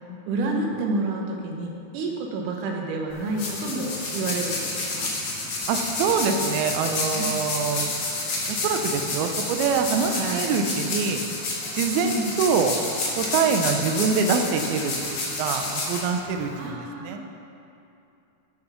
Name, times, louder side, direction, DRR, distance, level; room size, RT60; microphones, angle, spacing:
voice 1, 0.3-5.1 7.1-7.4 10.2-10.6 11.9-12.4 16.5-17.2, right 2 dB, 70° right, 1 dB, 2.3 m, -29 dB
sound 1, 3.1-16.7, left 2 dB, 60° left, 1.2 m, -30 dB
voice 2, 5.7-7.9 8.5-11.2 11.7-12.8 13.2-17.2, right 5 dB, 90° right, 5 dB, 2.6 m, -25 dB
8.6 x 8.4 x 5.7 m, 2.7 s
omnidirectional pair, 4.3 m